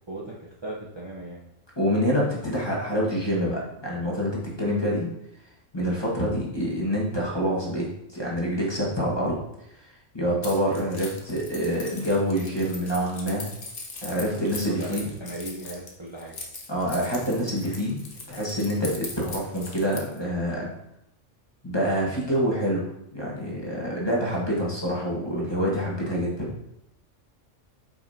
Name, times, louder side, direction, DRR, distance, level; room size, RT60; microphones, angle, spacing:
voice 1, 0.1-1.4 14.4-16.3, right 2 dB, 25° right, -5 dB, 0.9 m, -37 dB
voice 2, 1.8-5.1 5.7-7.9 8.1-9.3 10.1-13.5 14.0-15.1 16.7-18.0 18.3-20.7 21.6-26.5, equal, 20° left, -5 dB, 1.6 m, -26 dB
Keys jangling, 10.4-20.2, left 3 dB, 45° left, 1.2 m, -40 dB
8.3 x 5.5 x 2.8 m, 0.82 s
omnidirectional pair, 1.3 m